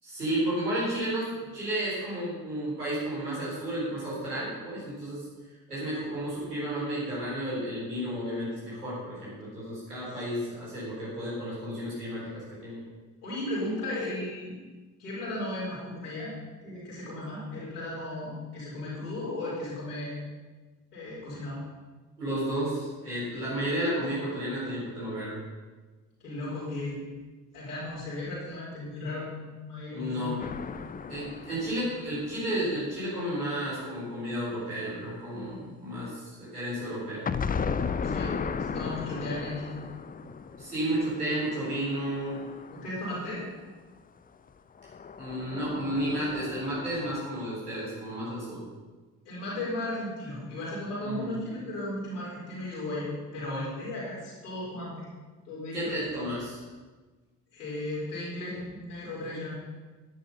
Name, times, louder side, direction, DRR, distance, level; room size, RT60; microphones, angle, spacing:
voice 1, 0.0-5.3 5.7-12.8 22.2-25.4 29.9-30.4 31.1-37.2 40.6-42.4 45.2-48.6 51.0-51.3 55.7-56.6, right 1 dB, 85° right, -8 dB, 4.4 m, -32 dB
voice 2, 13.2-14.6 15.0-16.3 16.6-20.2 20.9-21.6 26.2-27.0 27.5-30.4 38.0-39.8 42.7-43.4 49.2-55.1 55.5-55.9 57.5-59.5, left 1 dB, 80° left, -7 dB, 4.3 m, -35 dB
sound 1, 30.4-33.2 37.3-43.5 44.8-47.2, left 5 dB, 20° left, 0.6 m, -36 dB
10.5 x 10.0 x 5.5 m, 1.3 s
figure-of-eight pair, 45°, 45 cm